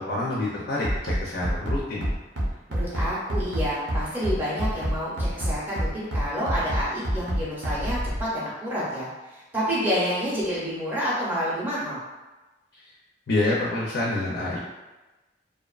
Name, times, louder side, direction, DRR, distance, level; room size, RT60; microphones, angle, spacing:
voice 1, 0.0-2.1 12.7-12.8 13.3-14.6, left 2 dB, 75° left, -5 dB, 0.5 m, -27 dB
Bass drum, 0.8-8.2, equal, 75° right, 0.7 m, -26 dB
voice 2, 2.7-12.0, equal, 10° right, -8 dB, 0.6 m, -29 dB
2.5 x 2.2 x 2.3 m, 1.1 s
head